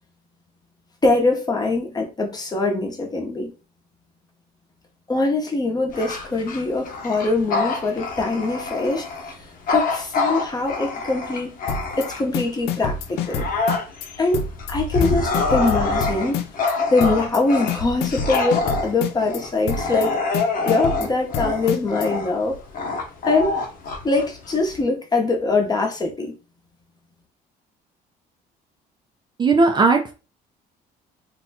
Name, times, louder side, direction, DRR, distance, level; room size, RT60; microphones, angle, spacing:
voice 1, 1.0-3.5 5.1-9.1 9.7-11.6 12.0-13.5 14.2-14.4 14.7-16.4 16.9-20.1 20.6-22.6 23.3-23.5 24.0-26.3, left 3 dB, 25° left, 0.9 m, -22 dB
Bark / Growling, 5.9-12.5 12.9-24.8, left 3 dB, 55° left, 0.9 m, -26 dB
sound 1, 11.7-12.1 12.3-14.1 14.3-14.7 15.0-16.7 17.0-17.4 17.7-19.4 19.7-20.1 20.3-22.1, left 6 dB, 75° left, 0.5 m, -27 dB
voice 2, 29.4-30.1, right 3 dB, 25° right, 0.5 m, -17 dB
2.7 x 2.3 x 4.1 m
cardioid pair, 110°, 17 cm